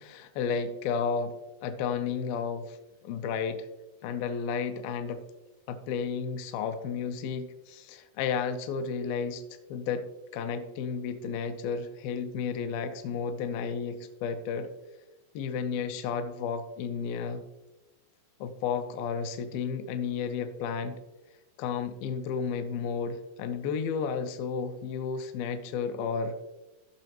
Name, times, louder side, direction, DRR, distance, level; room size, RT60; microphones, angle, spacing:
voice 1, 0.0-2.8 3.0-3.7 4.0-5.2 5.7-9.4 9.7-10.1 10.3-14.7 15.3-17.4 18.4-21.0 21.6-26.3, left 6 dB, 80° left, 8 dB, 2.2 m, -32 dB
14.5 x 6.1 x 2.9 m, 1.1 s
omnidirectional pair, 4.7 m